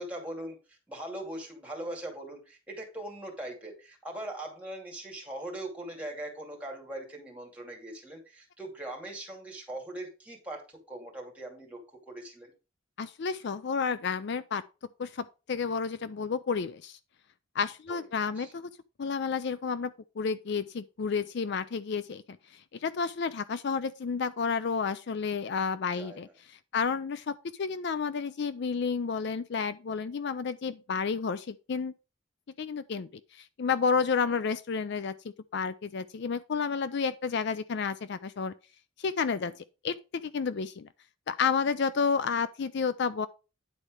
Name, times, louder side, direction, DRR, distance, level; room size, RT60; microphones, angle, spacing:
voice 1, 0.0-11.8 12.1-12.5 17.9-18.1 18.4-18.5 26.0-26.3 34.2-34.4 39.4-39.5, right 1 dB, 5° right, 2.5 m, -41 dB
voice 2, 13.0-14.6 15.0-17.0 17.6-18.7 19.0-22.2 22.8-31.9 32.6-35.1 35.5-38.5 39.0-39.5 39.8-40.9 41.3-43.3, left 5 dB, 55° left, 0.4 m, -31 dB
9.9 x 4.3 x 4.9 m
head